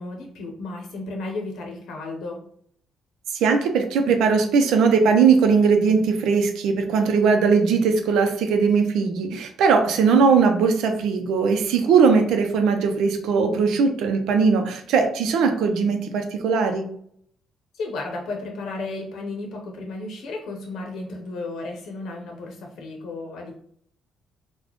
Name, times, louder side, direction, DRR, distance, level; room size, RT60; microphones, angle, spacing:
voice 1, 0.0-2.4 17.7-23.5, left 2 dB, 75° left, 1 dB, 0.7 m, -33 dB
voice 2, 3.3-16.9, right 5 dB, 85° right, 5 dB, 0.5 m, -19 dB
4.0 x 2.2 x 3.0 m, 0.64 s
cardioid pair, 120°, 0 cm